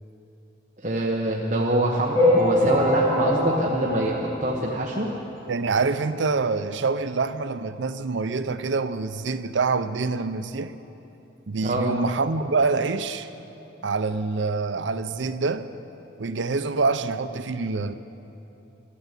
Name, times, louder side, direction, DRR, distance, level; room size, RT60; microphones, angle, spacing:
voice 1, 0.8-5.1 11.6-11.9, right 1 dB, 40° right, 1.2 m, -25 dB
sound 1, 2.1-5.0 5.5-5.6 5.8-5.9 6.2-6.3 7.2-7.3 7.7-7.8, left 1 dB, 20° left, 4.6 m, -23 dB
voice 2, 5.5-10.7 11.5-13.3 13.8-15.7 16.2-17.9, right 4 dB, 80° right, 0.6 m, -26 dB
13.5 x 13.0 x 8.2 m
head